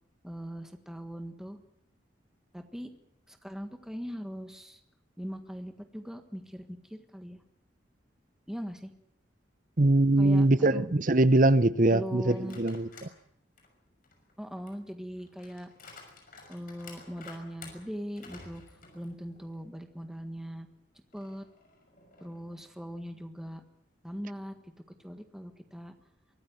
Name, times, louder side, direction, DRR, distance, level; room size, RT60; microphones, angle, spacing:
voice 1, 0.2-1.6 2.5-2.9 3.3-4.8 5.2-7.4 8.5-8.9 10.2-10.9 11.9-12.6 14.4-15.7 16.5-18.6 18.9-20.7 21.1-21.4 22.2-23.6 24.0-24.7 25.0-25.9, equal, 5° right, 1.5 m, -40 dB
voice 2, 9.8-12.9, right 2 dB, 45° right, 0.9 m, -22 dB
sound 1, 12.3-13.2 13.6-19.7 20.0-20.1 21.1-22.6, left 4 dB, 50° left, 6.2 m, -52 dB
24.0 x 14.5 x 9.4 m
head